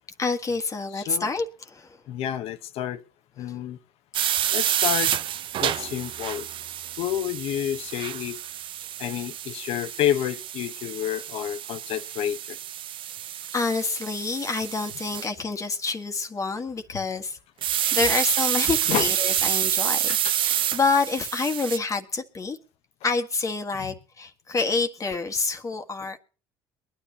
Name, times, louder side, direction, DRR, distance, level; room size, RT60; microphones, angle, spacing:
voice 1, 0.2-2.0 13.5-17.4 17.9-22.6 23.0-26.2, left 4 dB, 30° left, 1.7 m, -27 dB
voice 2, 0.9-1.3 2.1-3.0 3.4-3.8 4.5-5.2 5.6-6.5 7.0-8.4 9.0-12.6 18.9-19.1 20.1-20.3, left 11 dB, 70° left, 1.0 m, -29 dB
sound 1, 4.1-15.3 17.6-21.8, right 11 dB, 55° right, 0.6 m, -28 dB
23.0 x 10.0 x 2.9 m
supercardioid pair, 85°, 11 cm